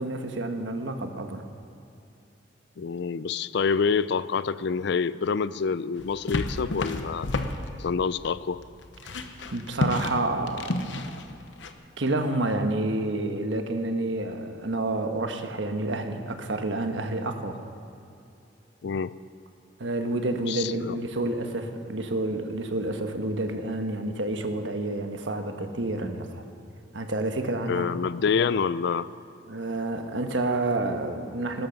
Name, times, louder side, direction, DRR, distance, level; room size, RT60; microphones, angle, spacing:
voice 1, 0.0-1.4 9.0-9.2 9.5-11.1 12.0-17.6 19.8-26.4 26.9-27.9 29.5-31.7, right 2 dB, 90° right, 6 dB, 1.2 m, -29 dB
voice 2, 2.8-7.3 7.8-8.6 18.8-19.1 20.5-21.0 27.7-29.1, left 5 dB, 65° left, 17 dB, 0.4 m, -27 dB
sound 1, 6.0-11.7, left 2 dB, 85° left, 0.9 m, -32 dB
17.5 x 13.0 x 5.3 m, 2.7 s
head